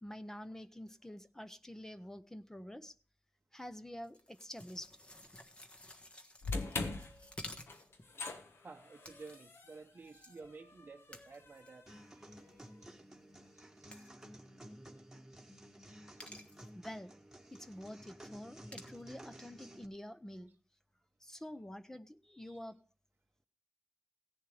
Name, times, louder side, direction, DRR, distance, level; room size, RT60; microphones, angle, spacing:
voice 1, 0.0-2.9 3.5-4.9 16.7-17.1 17.5-20.5 21.2-22.8, left 1 dB, 10° left, 0.6 m, -48 dB
sound 1, 4.0-8.1 9.0-9.6 10.0-10.4 11.1-11.9 12.4-12.6 13.9-14.2 16.2-16.7 18.7-19.0, left 1 dB, 25° left, 1.4 m, -52 dB
sound 2, 6.4-12.7, left 3 dB, 70° left, 1.4 m, -44 dB
voice 2, 8.6-11.9 13.5-13.9 15.9-16.2 18.6-18.7 22.5-22.6, right 4 dB, 40° right, 0.7 m, -53 dB
sound 3, 11.9-19.9, equal, 5° right, 1.7 m, -54 dB
16.5 x 10.5 x 3.2 m
wide cardioid pair, 120°, 4 cm